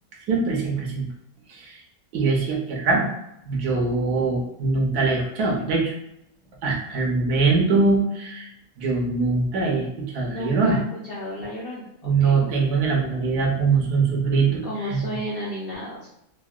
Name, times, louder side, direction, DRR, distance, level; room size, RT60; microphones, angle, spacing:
voice 1, 0.3-1.0 1.5-1.8 2.1-3.1 3.5-5.9 6.6-8.5 8.8-10.8 12.0-15.0, right 4 dB, 85° right, 0 dB, 1.2 m, -22 dB
voice 2, 10.3-10.8 11.1-12.5 14.6-16.1, equal, 65° left, -6 dB, 0.5 m, -33 dB
3.7 x 2.1 x 2.3 m, 0.81 s
omnidirectional pair, 1.6 m